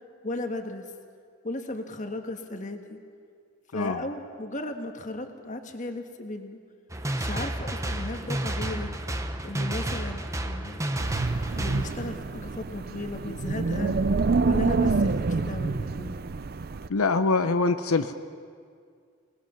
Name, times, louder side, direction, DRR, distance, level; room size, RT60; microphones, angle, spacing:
voice 1, 0.2-0.8 1.4-3.0 3.7-6.6 7.2-8.9 9.4-10.9 11.5-13.9 14.4-16.2, left 2 dB, 35° left, 6 dB, 1.5 m, -35 dB
sound 1, 6.9-11.9, right 1 dB, 15° right, 0.9 m, -31 dB
Wind, 11.0-16.9, right 3 dB, 45° right, 0.5 m, -27 dB
voice 2, 16.9-18.1, left 3 dB, 85° left, 9 dB, 0.7 m, -24 dB
27.0 x 19.0 x 5.8 m, 2.2 s
head